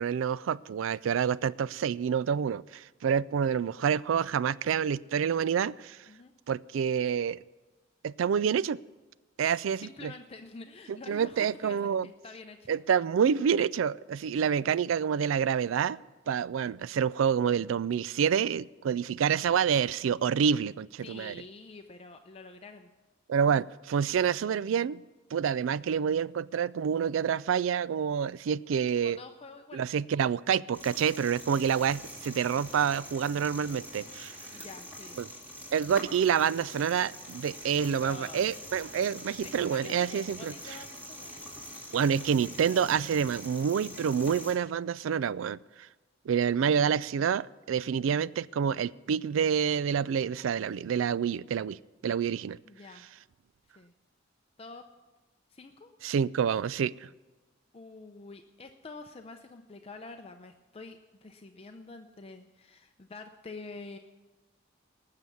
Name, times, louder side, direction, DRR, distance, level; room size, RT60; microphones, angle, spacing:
voice 1, 0.0-6.0 6.5-7.4 8.0-8.8 9.4-10.1 10.9-12.1 12.7-16.0 16.3-21.4 23.3-25.0 25.3-29.2 29.7-34.4 35.2-35.3 35.7-40.5 41.9-45.6 46.3-51.8 52.0-52.6 56.0-57.1, right 7 dB, 80° right, 20 dB, 0.3 m, -28 dB
voice 2, 9.8-12.8 21.0-22.9 29.0-30.0 34.5-35.2 38.0-38.4 39.4-41.4 52.6-53.0 53.8-53.9 54.6-54.8 55.5-55.9 57.7-64.0, left 3 dB, 30° left, 5 dB, 0.6 m, -47 dB
sound 1, 30.7-44.6, equal, 10° right, 2.5 m, -45 dB
19.0 x 6.8 x 7.1 m, 1.2 s
head